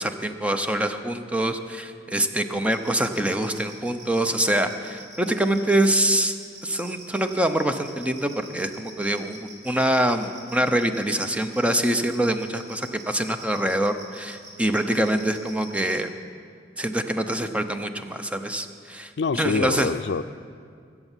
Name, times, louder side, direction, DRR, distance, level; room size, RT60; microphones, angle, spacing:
voice 1, 0.0-6.4 6.6-16.1 16.8-19.9, right 1 dB, 5° right, 7 dB, 0.7 m, -25 dB
sound 1, 2.7-15.9, right 3 dB, 75° right, 4.3 m, -45 dB
voice 2, 19.2-20.2, left 4 dB, 70° left, 13 dB, 0.4 m, -25 dB
22.0 x 8.1 x 7.4 m, 2.2 s
head